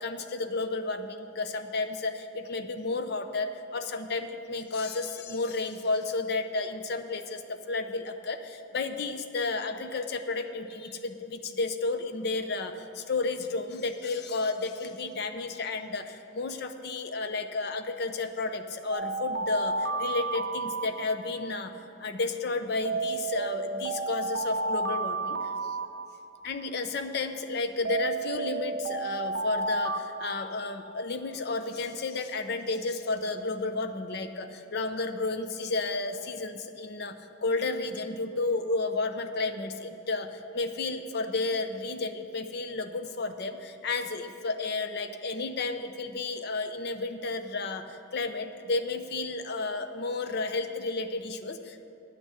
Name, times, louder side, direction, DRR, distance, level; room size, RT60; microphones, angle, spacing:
voice 1, 0.0-21.7 22.0-25.8 26.4-37.2 37.4-51.9, left 3 dB, 50° left, 8 dB, 0.6 m, -32 dB
Alarm, 18.9-21.5 22.8-26.5 27.8-31.1, right 3 dB, 55° right, 0.6 m, -32 dB
10.0 x 6.3 x 8.1 m, 2.7 s
head